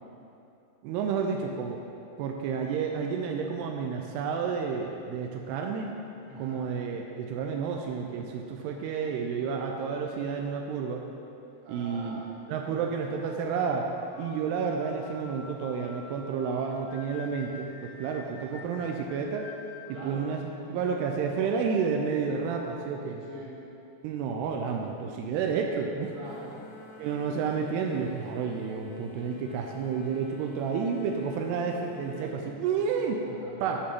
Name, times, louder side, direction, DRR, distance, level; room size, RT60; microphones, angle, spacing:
voice 1, 0.8-1.8 2.2-6.0 6.4-11.0 11.7-12.2 12.5-13.9 14.2-19.5 19.9-20.4 20.7-23.2 24.0-26.2 27.0-33.2 33.6-33.8, right 6 dB, 85° right, 2 dB, 2.6 m, -30 dB
voice 2, 6.2-6.6 11.6-12.3 12.6-13.0 18.4-18.7 19.9-21.1 23.2-23.6 26.1-26.7 32.8-33.6, right 2 dB, 60° right, -5 dB, 2.3 m, -45 dB
sound 1, 11.6-24.4, left 4 dB, 55° left, 3.2 m, -51 dB
sound 2, 26.2-32.3, left 5 dB, 70° left, 2.8 m, -49 dB
12.5 x 5.3 x 3.6 m, 2.7 s
omnidirectional pair, 4.7 m